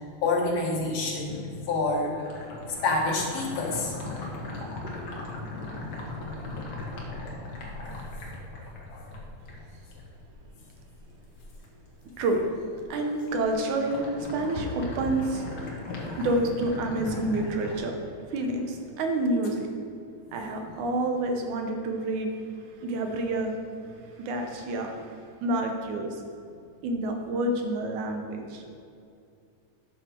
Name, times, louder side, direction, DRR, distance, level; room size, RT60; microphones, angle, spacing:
voice 1, 0.2-2.2 2.5-3.9 8.9-9.1 20.3-20.5, left 3 dB, 65° left, -2 dB, 2.6 m, -28 dB
sound 1, 1.3-11.6 12.0-12.5 12.7-17.8, left 2 dB, 45° left, 1.6 m, -38 dB
voice 2, 12.9-14.1 14.3-15.4 16.2-17.9 18.3-19.7 20.3-22.3 22.8-23.5 24.2-25.0 25.4-26.1 26.8-28.6, right 2 dB, 75° right, 3 dB, 2.4 m, -28 dB
12.5 x 6.3 x 4.5 m, 2.5 s
omnidirectional pair, 3.5 m